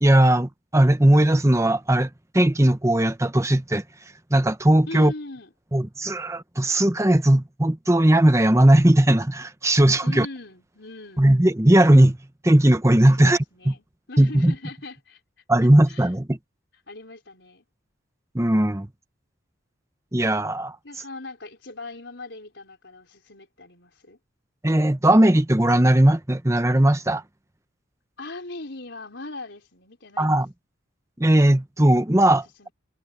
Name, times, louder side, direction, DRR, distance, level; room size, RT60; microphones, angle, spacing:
voice 1, 0.0-3.8 4.3-5.1 5.7-10.3 11.2-12.2 12.4-13.4 14.2-14.5 15.5-16.4 18.3-18.9 20.1-20.8 24.6-27.2 30.2-30.5 31.2-32.7, right 1 dB, 15° right, 0.9 m, -18 dB
voice 2, 4.9-5.5 10.0-11.3 13.2-15.2 15.9-16.1 16.9-17.6 20.8-24.2 28.2-30.4 32.6-32.7, left 2 dB, 60° left, 5.3 m, -39 dB
head